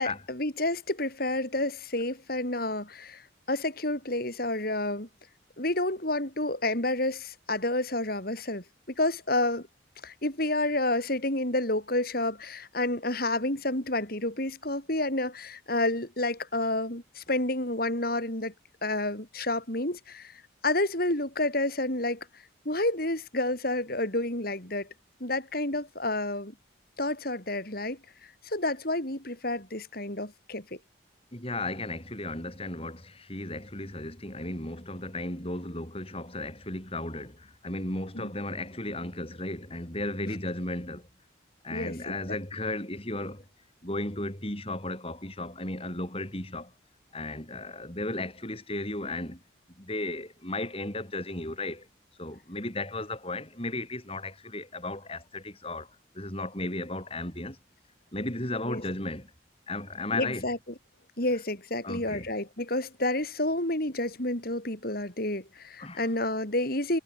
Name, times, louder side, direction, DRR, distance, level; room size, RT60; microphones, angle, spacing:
voice 1, 0.0-5.1 5.6-8.6 9.0-9.7 10.0-18.5 18.8-22.3 22.7-24.9 25.2-26.5 27.0-30.8 38.1-38.3 41.7-42.1 58.6-58.8 60.1-60.6 61.2-67.0, left 2 dB, 50° left, 5.3 m, -30 dB
voice 2, 31.3-41.1 41.6-43.5 43.8-46.7 47.1-49.4 49.8-51.9 52.2-55.9 56.2-57.6 58.1-59.3 59.7-60.4 61.8-62.3 65.8-66.1, left 2 dB, 30° left, 6.9 m, -35 dB
head